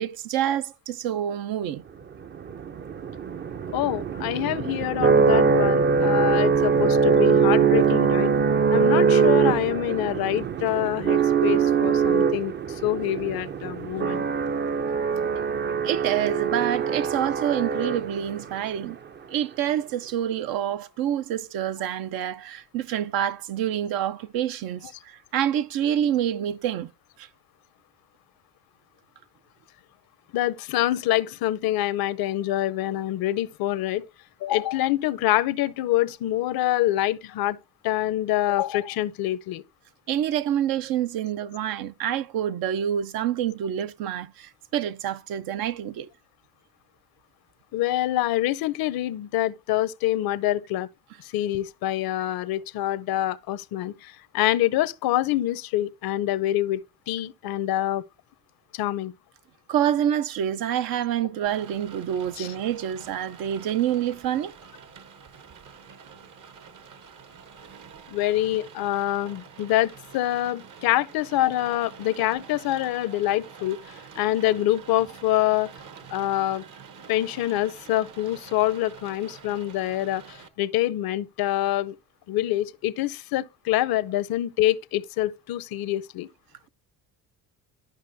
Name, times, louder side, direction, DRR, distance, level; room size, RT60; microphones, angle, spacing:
voice 1, 0.0-1.8 15.8-19.0 19.3-26.9 27.2-27.3 40.1-46.1 59.7-64.5, right 10 dB, 75° right, 0.7 m, -27 dB
sound 1, 2.2-18.4, right 6 dB, 30° right, 0.5 m, -22 dB
voice 2, 3.7-8.3 8.7-14.2 30.3-34.0 34.4-37.6 37.8-39.6 47.7-50.9 51.2-56.8 57.1-58.0 58.7-59.1 62.4-62.5 68.1-73.8 74.2-75.7 76.1-76.6 77.1-82.0 82.3-86.3, left 14 dB, 75° left, 0.7 m, -26 dB
Rain, 61.5-80.5, right 6 dB, 55° right, 1.1 m, -47 dB
12.5 x 5.1 x 2.7 m
cardioid pair, 85°, 36 cm